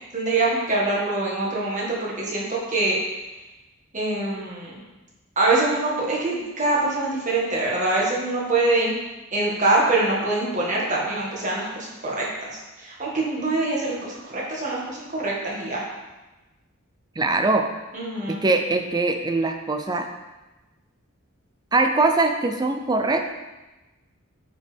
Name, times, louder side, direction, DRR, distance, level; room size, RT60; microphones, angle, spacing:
voice 1, 0.1-3.0 3.9-4.8 5.3-8.9 9.3-15.8 17.9-18.4, right 2 dB, 35° right, -4 dB, 1.8 m, -24 dB
voice 2, 17.2-17.7 18.3-20.1 21.7-23.3, right 3 dB, 20° right, 5 dB, 0.4 m, -22 dB
9.6 x 5.1 x 3.4 m, 1.1 s
head